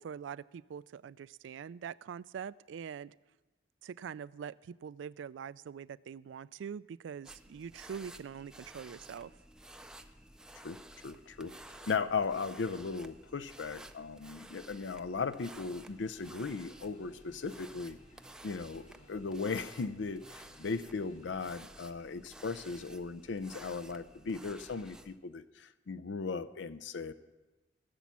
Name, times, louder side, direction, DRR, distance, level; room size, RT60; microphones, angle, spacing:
voice 1, 0.0-3.1 3.8-9.3, right 7 dB, 85° right, 19 dB, 0.3 m, -44 dB
sound 1, 7.2-25.2, right 1 dB, 5° right, 0.4 m, -53 dB
voice 2, 10.5-18.0 18.4-27.1, left 4 dB, 75° left, 13 dB, 0.5 m, -37 dB
sound 2, 15.7-21.5, left 1 dB, 45° left, 2.5 m, -62 dB
16.5 x 7.0 x 7.4 m, 1.1 s
head